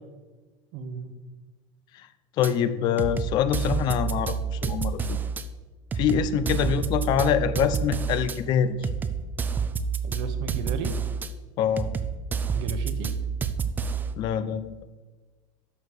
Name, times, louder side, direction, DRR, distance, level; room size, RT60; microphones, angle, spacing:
voice 1, 0.7-1.1 6.4-6.7 10.0-10.9 12.5-13.1, right 5 dB, 60° right, 8 dB, 1.2 m, -34 dB
voice 2, 2.4-5.2 6.0-8.9 11.6-12.0 14.2-14.7, left 8 dB, 40° left, 13 dB, 0.6 m, -25 dB
sound 1, 2.4-2.5 3.0-5.4 5.9-8.4 8.8-11.3 11.8-14.1, right 6 dB, 15° right, 0.5 m, -29 dB
11.5 x 6.5 x 4.9 m, 1.3 s
cardioid pair, 160°, 11 cm